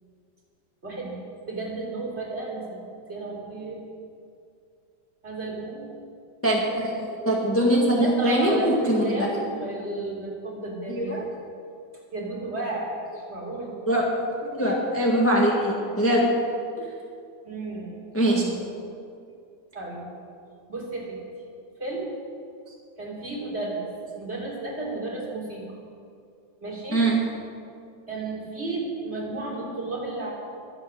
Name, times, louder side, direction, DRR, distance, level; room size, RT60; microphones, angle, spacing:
voice 1, 0.8-1.2 1.5-2.8 3.1-3.8 5.2-5.9 6.6-7.1 8.0-11.2 12.1-13.8 17.4-18.0 18.3-18.6 19.7-20.1 20.7-21.2 21.8-22.1 23.0-23.9 24.2-25.8 26.6-27.0 28.1-30.3, right 2 dB, 30° right, -3 dB, 3.5 m, -33 dB
voice 2, 6.4-6.9 7.2-9.2 10.9-11.2 13.9-14.3 14.5-16.4 16.8-16.9 18.1-18.4 26.9-27.2, right 1 dB, 5° left, -3 dB, 1.6 m, -22 dB
24.0 x 8.6 x 6.5 m, 2.4 s
omnidirectional pair, 2.1 m